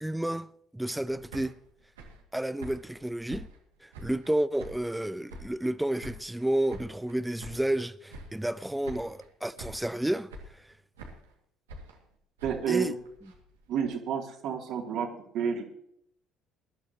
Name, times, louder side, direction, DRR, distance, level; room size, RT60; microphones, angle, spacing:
voice 1, 0.0-1.5 2.3-3.5 3.8-10.3 12.7-12.9, right 1 dB, 5° right, 0.6 m, -31 dB
sound 1, 1.0-4.3 4.6-5.7 6.0-7.8 8.1-8.6 8.8-9.3 9.6-10.0 10.3-11.3 11.7-13.9, right 1 dB, 90° right, 2.3 m, -47 dB
voice 2, 12.4-12.9 13.7-15.1 15.3-15.7, right 7 dB, 65° right, 3.0 m, -30 dB
21.0 x 11.5 x 3.1 m
hypercardioid pair, 60°, 0 cm